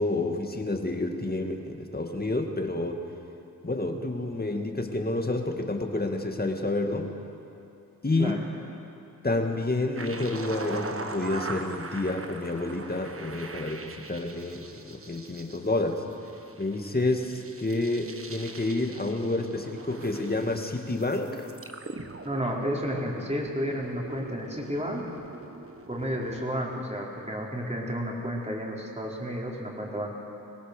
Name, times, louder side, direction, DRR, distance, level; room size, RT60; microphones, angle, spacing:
voice 1, 0.0-3.0 3.6-7.1 8.0-8.4 9.2-16.0 16.6-21.5, left 2 dB, 30° left, 4 dB, 2.1 m, -29 dB
sound 1, 9.9-26.4, right 3 dB, 40° right, 1.4 m, -42 dB
voice 2, 22.2-25.1 25.9-30.2, equal, 20° right, -2 dB, 4.0 m, -31 dB
23.0 x 18.0 x 6.8 m, 2.8 s
cardioid pair, 65°, 33 cm